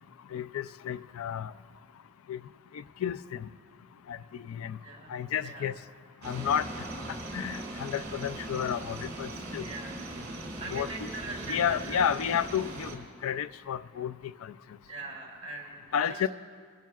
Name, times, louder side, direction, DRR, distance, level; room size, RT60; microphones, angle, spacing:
voice 1, 0.3-1.5 2.3-2.4 2.7-3.5 4.1-4.8 5.1-5.7 6.2-6.7 7.3-9.7 10.7-11.1 11.5-14.1 14.4-14.5 15.9-16.3, left 8 dB, 80° left, 13 dB, 0.4 m, -31 dB
sound 1, 6.2-13.0, right 2 dB, 50° right, 2.7 m, -39 dB
voice 2, 9.6-10.0 10.6-12.0 14.9-15.8 16.1-16.2, right 2 dB, 30° right, -2 dB, 2.9 m, -41 dB
22.5 x 12.0 x 2.4 m, 2.1 s
head